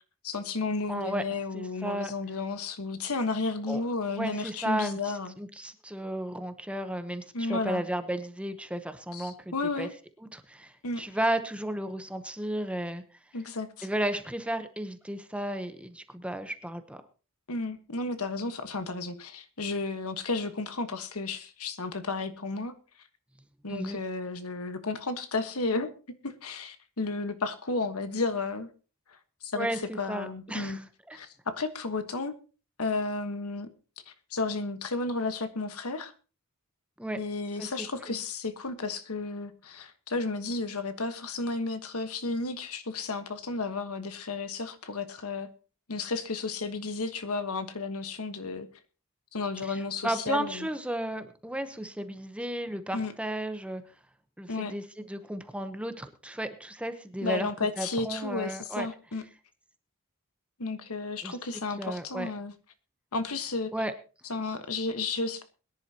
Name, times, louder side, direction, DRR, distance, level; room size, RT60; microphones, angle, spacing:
voice 1, 0.2-5.3 7.3-7.8 9.1-9.9 10.8-11.0 13.3-13.9 17.5-22.7 23.6-25.9 26.2-28.7 29.1-30.8 31.1-32.3 32.8-33.7 34.1-36.1 37.2-45.5 45.9-48.7 49.3-50.7 52.9-53.1 54.5-54.7 57.2-59.2 60.6-62.5 63.1-63.7 64.3-65.4, left 3 dB, 75° left, 10 dB, 1.4 m, -33 dB
voice 2, 0.9-1.2 1.5-2.1 3.7-3.8 4.1-9.3 9.8-9.9 10.3-13.0 13.8-17.0 23.7-24.0 29.5-30.8 31.1-31.2 37.0-37.2 37.6-37.7 38.1-38.2 49.7-53.8 54.4-57.5 57.8-58.9 61.2-61.4 61.8-62.3 63.7-63.9, right 1 dB, 5° right, 9 dB, 0.9 m, -33 dB
22.0 x 10.5 x 2.9 m, 0.35 s
head